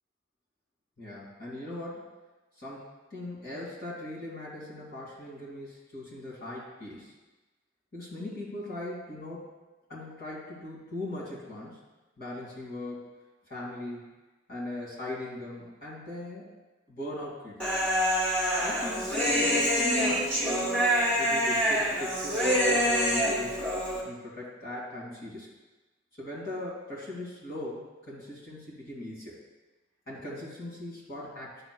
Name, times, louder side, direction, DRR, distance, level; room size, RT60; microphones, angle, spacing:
voice 1, 1.0-2.1 2.6-2.8 3.1-7.1 7.9-9.5 9.9-11.8 12.2-13.1 13.5-14.1 14.5-16.5 16.9-17.6 18.5-20.7 21.2-23.6 24.0-25.5 26.2-29.4 30.1-31.6, left 1 dB, 50° left, -5 dB, 2.4 m, -39 dB
Human voice, 17.6-24.0, equal, 5° left, 1.6 m, -26 dB
9.7 x 6.3 x 2.2 m, 1.2 s
head